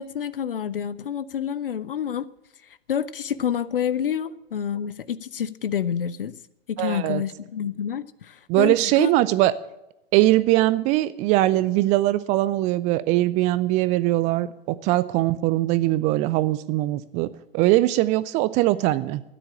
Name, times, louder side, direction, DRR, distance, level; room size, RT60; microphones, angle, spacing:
voice 1, 0.0-2.3 2.6-6.3 6.7-9.1, left 8 dB, 70° left, 0.6 m, -28 dB
voice 2, 6.8-7.2 8.5-9.5 10.1-19.2, right 16 dB, 25° right, 0.4 m, -21 dB
12.5 x 10.0 x 8.6 m
figure-of-eight pair, 95°, 29 cm